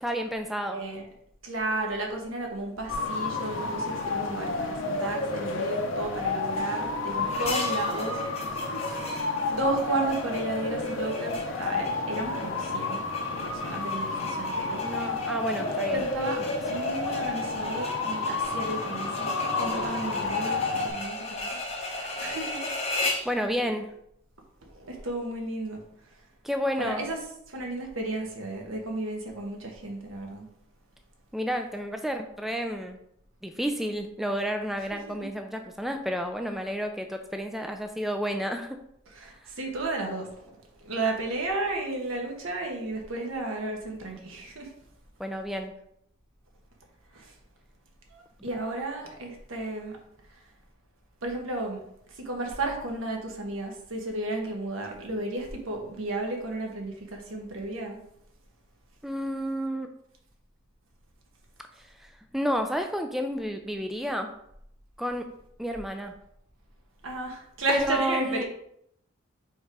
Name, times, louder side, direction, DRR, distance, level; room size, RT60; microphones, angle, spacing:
voice 1, 0.0-0.8 14.8-16.0 23.3-23.9 26.4-27.0 31.3-33.0 33.4-38.8 45.2-45.7 59.0-59.9 61.8-64.3 65.0-65.3 65.6-66.1 67.7-68.4, equal, ahead, 5 dB, 0.4 m, -31 dB
voice 2, 0.7-1.1 1.4-8.2 8.8-13.0 13.4-14.8 15.9-16.4 16.7-21.4 21.7-22.7 23.6-23.7 24.6-25.8 26.8-27.2 27.5-30.5 39.1-44.7 47.1-47.3 48.1-50.0 50.3-50.4 51.2-51.8 52.1-58.0 67.0-68.4, right 2 dB, 80° right, 1 dB, 1.3 m, -33 dB
sound 1, 2.9-20.9, left 3 dB, 70° left, 0.9 m, -30 dB
sound 2, 7.3-23.4, left 2 dB, 30° left, 0.7 m, -37 dB
5.2 x 3.8 x 4.7 m, 0.74 s
head